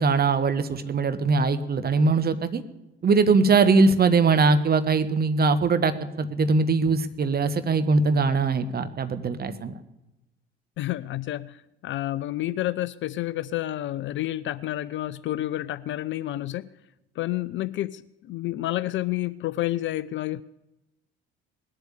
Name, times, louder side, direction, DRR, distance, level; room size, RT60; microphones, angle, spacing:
voice 1, 0.0-2.6 3.0-9.8, right 4 dB, 30° right, 10 dB, 1.3 m, -21 dB
voice 2, 10.8-16.7 17.2-20.4, left 15 dB, 40° left, 19 dB, 0.5 m, -29 dB
20.0 x 8.1 x 8.4 m, 0.95 s
figure-of-eight pair, 50°, 31 cm